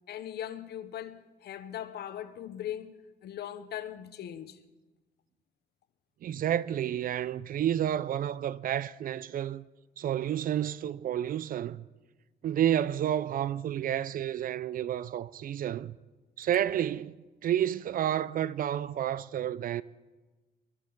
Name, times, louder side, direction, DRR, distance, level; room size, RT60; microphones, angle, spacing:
voice 1, 0.1-2.9 3.2-4.6, left 10 dB, 75° left, 0.8 m, -39 dB
voice 2, 6.2-9.6 10.0-11.9 12.4-16.0 16.4-17.2 17.4-19.8, right 10 dB, 60° right, 0.4 m, -30 dB
22.5 x 13.0 x 3.9 m
cardioid pair, 120°, 17 cm